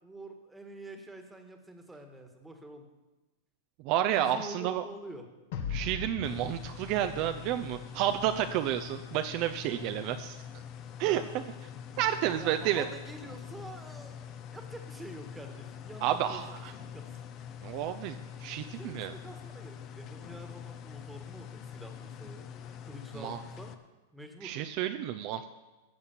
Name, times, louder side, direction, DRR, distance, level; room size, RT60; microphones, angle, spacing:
voice 1, 0.0-2.9 4.2-5.3 11.0-11.4 12.4-16.4 16.8-17.1 18.7-22.4 22.8-23.7 24.1-24.6, right 1 dB, 5° right, 5 dB, 1.6 m, -47 dB
voice 2, 3.8-4.8 5.7-10.4 11.0-11.4 12.0-12.9 16.0-16.7 17.6-19.1 23.1-23.4 24.4-25.5, right 11 dB, 45° right, 9 dB, 0.6 m, -30 dB
sound 1, 5.5-8.8, left 5 dB, 65° left, 1.8 m, -40 dB
sound 2, 6.2-23.7, left 8 dB, 35° left, 0.9 m, -45 dB
14.0 x 6.5 x 7.3 m, 1.1 s
supercardioid pair, 140°, 0 cm